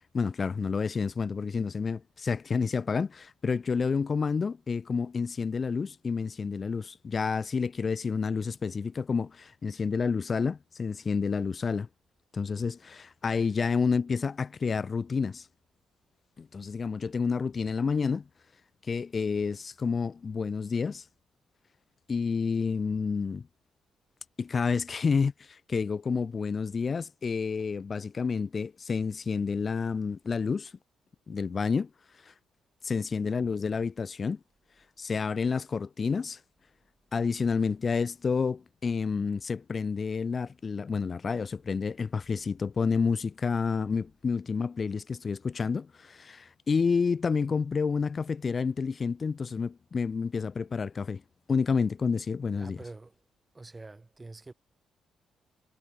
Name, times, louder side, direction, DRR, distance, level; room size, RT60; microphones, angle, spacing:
voice 1, 0.0-11.9 12.3-15.5 16.4-18.2 18.9-21.0 22.1-23.5 24.4-30.7 31.3-31.9 32.2-32.3 32.8-34.4 35.0-36.4 37.1-51.2 51.5-52.8, left 5 dB, 40° left, 1.3 m, -29 dB
voice 2, 52.6-53.2 53.5-54.5, right 2 dB, 20° right, 4.6 m, -46 dB
cardioid pair, 90°, 0 cm